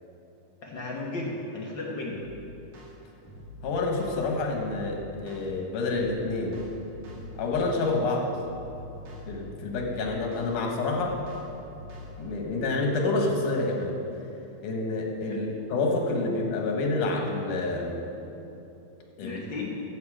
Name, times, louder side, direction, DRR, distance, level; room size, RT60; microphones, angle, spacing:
voice 1, 0.6-2.2 15.3-15.5 19.2-19.8, left 2 dB, 55° left, -2 dB, 1.3 m, -34 dB
sound 1, 2.1-2.3 2.7-2.9 3.2-4.8 5.3-5.4 5.8-7.4 7.8-8.0 8.3-9.9 10.3-10.5 10.8-12.1, left 1 dB, 75° right, 3.5 m, -45 dB
voice 2, 3.6-6.6 7.4-8.3 9.3-11.2 12.2-14.0 14.6-18.1 19.2-19.4, left 3 dB, 85° left, 1 dB, 2.9 m, -28 dB
14.5 x 7.5 x 4.9 m, 2.9 s
omnidirectional pair, 3.5 m